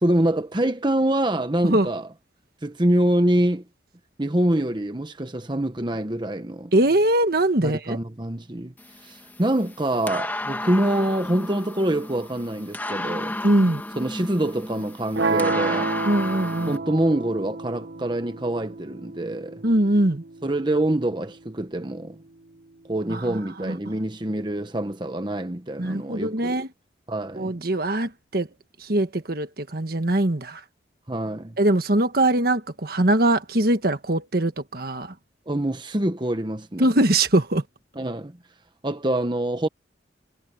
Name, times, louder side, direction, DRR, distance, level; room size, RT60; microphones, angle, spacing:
voice 1, 0.0-2.1 2.6-3.6 4.2-6.7 7.6-8.7 9.0-13.4 14.0-15.9 16.7-19.6 20.4-22.2 22.9-26.7 27.1-27.5 31.1-31.6 35.5-36.9 37.9-38.4 38.8-39.7, right 1 dB, 25° right, 1.1 m, -25 dB
voice 2, 6.7-8.0 13.4-13.8 16.0-16.8 19.6-20.2 23.1-23.8 25.8-26.7 27.3-28.5 28.8-30.6 31.6-35.1 36.8-37.6, right 1 dB, 55° right, 1.5 m, -22 dB
sound 1, 8.8-16.8, left 1 dB, 10° left, 1.6 m, -33 dB
sound 2, 15.1-21.2, right 3 dB, 80° right, 1.3 m, -30 dB
head